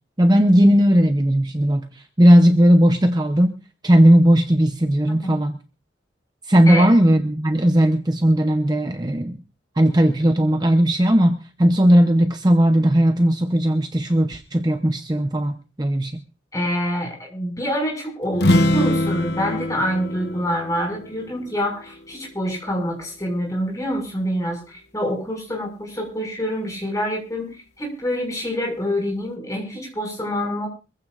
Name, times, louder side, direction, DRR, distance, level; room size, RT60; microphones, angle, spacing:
voice 1, 0.2-3.6 3.8-5.6 6.5-9.4 9.8-16.2, equal, 20° right, 6 dB, 0.8 m, -17 dB
voice 2, 16.5-27.5 27.8-30.7, equal, 20° left, 0 dB, 5.9 m, -26 dB
sound 1, 18.3-22.1, left 1 dB, 60° left, 0.9 m, -23 dB
24.5 x 15.5 x 2.5 m, 0.32 s
head